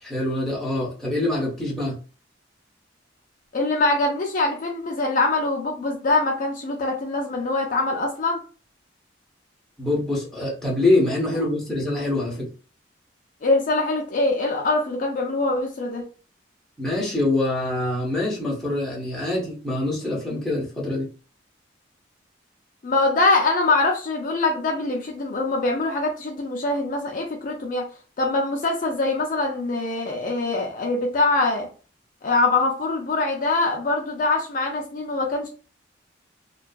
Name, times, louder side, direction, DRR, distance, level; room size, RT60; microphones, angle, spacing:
voice 1, 0.0-2.0 9.8-12.5 16.8-21.1, left 2 dB, ahead, -4 dB, 0.7 m, -24 dB
voice 2, 3.5-8.4 13.4-16.1 22.8-27.9 28.2-31.7 32.2-35.5, left 2 dB, 45° left, 1 dB, 0.4 m, -23 dB
2.5 x 2.3 x 2.2 m, 0.37 s
head